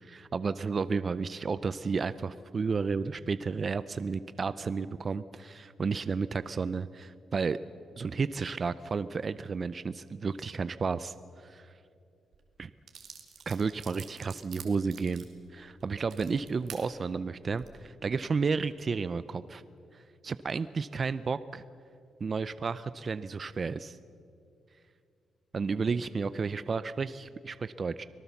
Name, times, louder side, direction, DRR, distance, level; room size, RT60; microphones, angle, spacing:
voice 1, 0.0-7.6 8.0-11.1 11.4-11.7 12.6-12.7 13.5-15.3 15.5-19.6 19.9-21.6 22.2-24.0 25.5-28.0, right 5 dB, 35° right, 14 dB, 0.4 m, -32 dB
sound 1, 12.3-12.4 12.9-16.8 17.4-17.7, right 7 dB, 65° right, 2.5 m, -48 dB
24.5 x 18.5 x 7.0 m, 2.5 s
wide cardioid pair, 155°, 0 cm